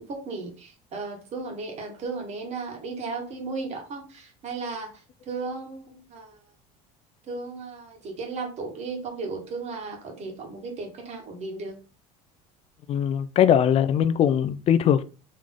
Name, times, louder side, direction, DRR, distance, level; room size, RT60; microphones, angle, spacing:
voice 1, 0.1-6.4 7.3-11.8, right 3 dB, 40° right, 1.5 m, -35 dB
voice 2, 12.9-15.0, left 9 dB, 35° left, 0.4 m, -21 dB
3.8 x 3.3 x 3.6 m
cardioid pair, 130°, 17 cm